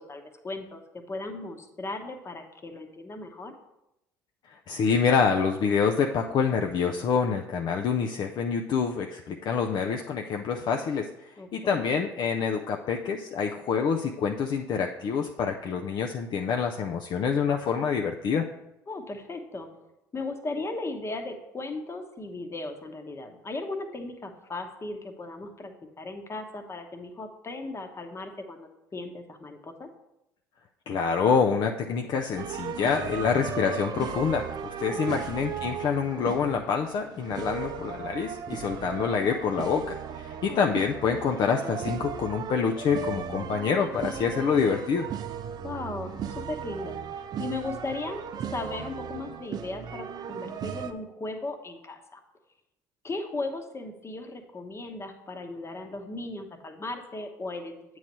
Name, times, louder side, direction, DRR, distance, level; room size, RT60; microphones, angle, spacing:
voice 1, 0.0-3.5 11.4-11.8 18.9-19.7 20.1-29.9 34.9-35.2 40.5-40.6 45.6-46.2 46.5-48.2 48.5-52.2 53.0-57.8, left 2 dB, 30° left, 5 dB, 1.0 m, -37 dB
voice 2, 4.5-18.5 30.9-45.1, left 6 dB, 50° left, 3 dB, 0.5 m, -27 dB
sound 1, 32.4-50.9, right 7 dB, 45° right, 0.5 m, -36 dB
8.3 x 3.1 x 5.3 m, 0.87 s
hypercardioid pair, 60°, 9 cm